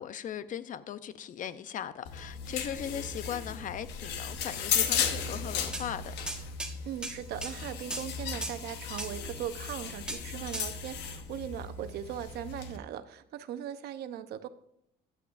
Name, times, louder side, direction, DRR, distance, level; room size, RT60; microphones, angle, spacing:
voice 1, 0.0-6.1, left 9 dB, 50° left, 0.7 m, -38 dB
sound 1, 2.1-12.8, left 7 dB, 90° left, 1.2 m, -35 dB
sound 2, 5.7-5.9 6.3-6.7 7.0-7.6 7.9-8.1 8.4-8.6 9.0-9.1 10.1-10.2 10.5-10.7, right 1 dB, 5° right, 1.5 m, -37 dB
voice 2, 6.8-14.5, right 10 dB, 70° right, 0.9 m, -39 dB
15.0 x 10.0 x 2.6 m
cardioid pair, 110°, 17 cm